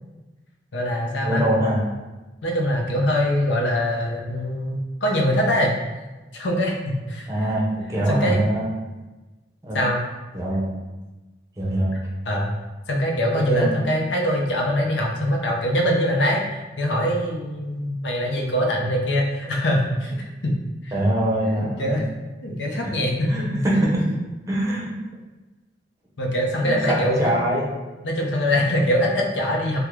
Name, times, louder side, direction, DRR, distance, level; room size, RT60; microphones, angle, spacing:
voice 1, 0.7-1.5 2.4-5.7 6.3-6.8 7.1-7.3 8.1-8.4 9.7-10.0 12.3-12.5 12.9-16.4 16.8-20.5 20.8-20.9 21.6-22.0 22.4-23.9 26.2-27.3 28.0-29.8, equal, 80° left, 0 dB, 0.6 m, -23 dB
voice 2, 1.2-1.8 7.3-8.7 9.6-9.8 10.3-10.7 11.6-11.9 13.3-13.7 20.9-22.0 22.8-22.9 23.3-24.0 24.5-24.9 26.6-27.7, right 1 dB, 15° right, -4 dB, 0.7 m, -23 dB
3.6 x 2.2 x 3.0 m, 1.1 s
head